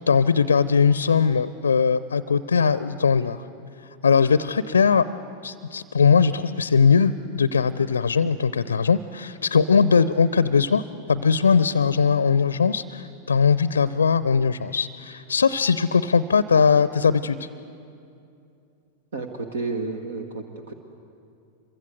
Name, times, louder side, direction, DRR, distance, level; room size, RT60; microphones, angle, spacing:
voice 1, 0.1-3.4 4.0-5.0 5.4-10.8 11.1-17.5, left 5 dB, 70° left, 16 dB, 0.6 m, -20 dB
voice 2, 19.1-20.7, right 3 dB, 65° right, 5 dB, 1.7 m, -31 dB
26.5 x 23.5 x 8.0 m, 2.5 s
figure-of-eight pair, 90°, 0 cm